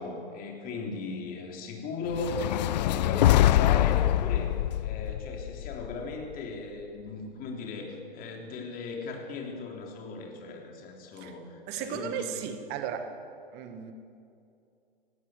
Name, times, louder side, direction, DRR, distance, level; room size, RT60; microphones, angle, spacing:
voice 1, 0.0-2.5 2.7-12.4, left 3 dB, 30° left, 1 dB, 3.5 m, -37 dB
sound 1, 2.1-6.4, left 13 dB, 50° left, 0.5 m, -24 dB
voice 2, 11.7-13.2 13.5-13.9, right 8 dB, 35° right, 8 dB, 1.6 m, -35 dB
19.0 x 17.5 x 7.9 m, 2.5 s
figure-of-eight pair, 105°, 29 cm